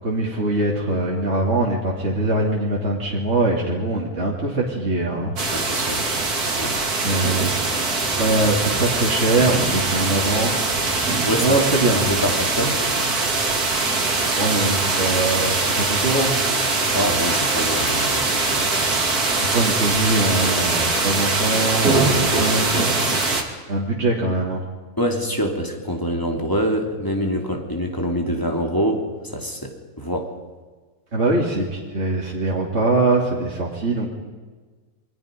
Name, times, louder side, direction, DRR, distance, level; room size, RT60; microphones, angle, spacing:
voice 1, 0.0-5.3 7.0-7.5 8.2-10.6 11.4-12.1 14.4-16.3 19.5-23.0 23.7-24.6 31.1-34.1, right 2 dB, 45° right, -3 dB, 3.2 m, -22 dB
sound 1, 5.4-23.4, right 3 dB, 85° right, 3.2 m, -22 dB
voice 2, 5.5-6.0 6.6-6.7 11.2-11.6 11.9-12.8 16.9-18.7 25.0-30.3, equal, 15° left, 2 dB, 3.1 m, -25 dB
28.0 x 23.5 x 5.3 m, 1.4 s
omnidirectional pair, 1.6 m